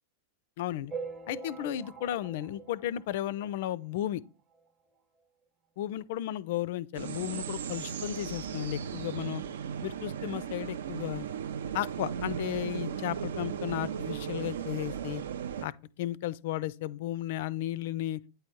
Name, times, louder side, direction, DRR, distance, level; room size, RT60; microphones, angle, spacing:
voice 1, 0.6-0.9 1.3-4.2 5.8-9.4 9.8-11.3 11.7-15.2 15.6-15.7 16.0-18.2, left 13 dB, 50° left, 0.3 m, -34 dB
sound 1, 0.9-3.8 4.2-4.3 4.5-4.7 5.0-5.1 5.9-6.0 6.5-6.6, right 4 dB, 25° right, 0.9 m, -43 dB
sound 2, 6.9-15.7, right 8 dB, 65° right, 0.4 m, -36 dB
8.9 x 3.5 x 4.4 m
figure-of-eight pair, 90°, 0 cm